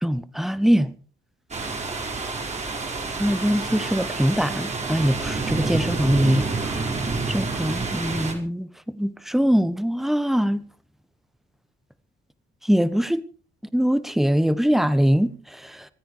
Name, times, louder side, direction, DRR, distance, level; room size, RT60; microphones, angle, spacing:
voice 1, 0.0-0.9 3.2-6.7 7.3-10.6 12.6-13.2 13.7-15.9, equal, ahead, 1.3 m, -22 dB
sound 1, 1.5-8.3, right 3 dB, 35° right, 5.0 m, -28 dB
25.5 x 9.3 x 4.8 m
cardioid pair, 90°, 20 cm